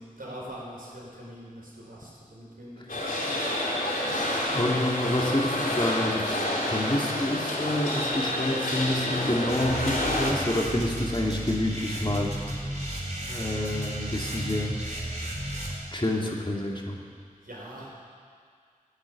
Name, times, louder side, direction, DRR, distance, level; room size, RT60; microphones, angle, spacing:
voice 1, 0.0-3.3 17.4-18.0, equal, 85° right, -5 dB, 4.4 m, -43 dB
sound 1, 2.9-10.3, left 1 dB, 75° left, 2.9 m, -28 dB
voice 2, 4.5-6.4 6.7-12.3 13.2-14.8 15.9-17.0, left 1 dB, 35° left, -1 dB, 2.2 m, -28 dB
sound 2, 9.5-15.8, right 1 dB, 55° right, 4.1 m, -34 dB
14.5 x 8.2 x 9.6 m, 2.1 s
wide cardioid pair, 55°, 15 cm